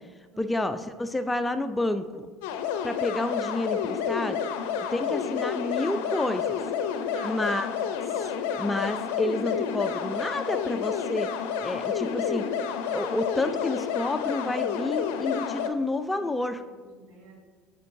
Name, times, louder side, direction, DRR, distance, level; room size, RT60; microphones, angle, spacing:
voice 1, 0.4-2.3 2.8-4.4 4.9-6.6 7.2-7.7 8.6-11.3 11.6-12.5 12.9-16.6, left 2 dB, 10° left, 10 dB, 0.3 m, -29 dB
sound 1, 2.4-15.7, left 7 dB, 75° left, 0.5 m, -30 dB
voice 2, 7.1-7.6 12.0-12.5 16.1-17.4, right 1 dB, 70° right, 0 dB, 1.6 m, -47 dB
7.9 x 5.2 x 2.6 m, 1.4 s
hypercardioid pair, 75°, 0 cm